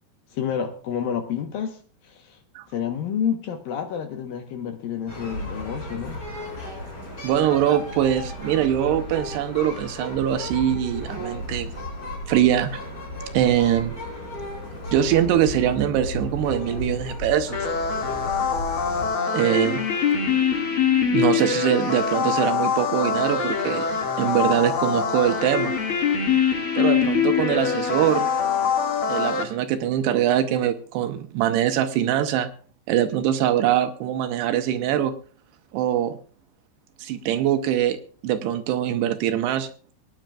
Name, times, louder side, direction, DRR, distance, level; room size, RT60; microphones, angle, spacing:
voice 1, 0.3-2.4 2.7-6.2, left 8 dB, 70° left, 6 dB, 2.4 m, -29 dB
sound 1, 5.1-19.1, left 1 dB, 25° left, 4.7 m, -34 dB
voice 2, 7.2-11.7 12.3-12.8 13.3-14.0 14.9-17.7 19.3-19.8 21.1-23.9 24.2-25.7 26.7-28.3 29.1-32.5 32.9-35.1 35.7-36.2 37.0-38.0 38.2-39.7, right 11 dB, 80° right, 8 dB, 2.8 m, -23 dB
sound 2, 17.5-29.4, left 6 dB, 45° left, 1.8 m, -23 dB
24.0 x 10.5 x 2.3 m, 0.41 s
omnidirectional pair, 5.1 m